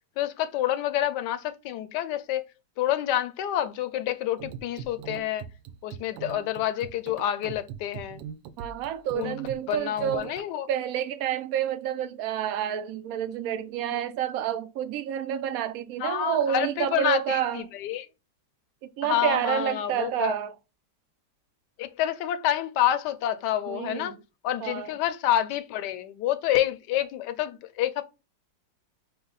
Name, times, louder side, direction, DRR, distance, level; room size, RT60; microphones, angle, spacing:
voice 1, 0.2-2.4 2.8-5.5 5.8-8.2 9.1-9.3 9.7-10.7 13.9-14.0 16.0-18.1 19.0-20.3 21.8-24.1 24.4-28.1, left 11 dB, 75° left, 1.1 m, -28 dB
sound 1, 4.4-10.4, right 8 dB, 85° right, 1.3 m, -41 dB
voice 2, 8.6-10.3 10.7-17.7 18.8-20.5 23.7-24.2 24.6-24.9, right 9 dB, 70° right, 0.9 m, -29 dB
5.5 x 2.1 x 3.9 m
omnidirectional pair, 2.0 m